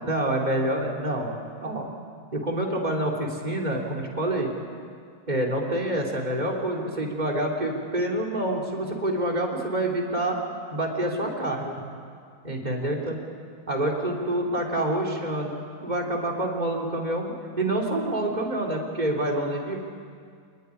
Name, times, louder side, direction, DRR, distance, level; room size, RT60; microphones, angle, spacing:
voice 1, 0.0-1.9 2.3-4.5 5.3-10.4 10.7-11.8 12.4-13.2 13.7-19.9, right 1 dB, 20° right, -1 dB, 3.8 m, -27 dB
25.0 x 21.0 x 10.0 m, 2.2 s
omnidirectional pair, 2.3 m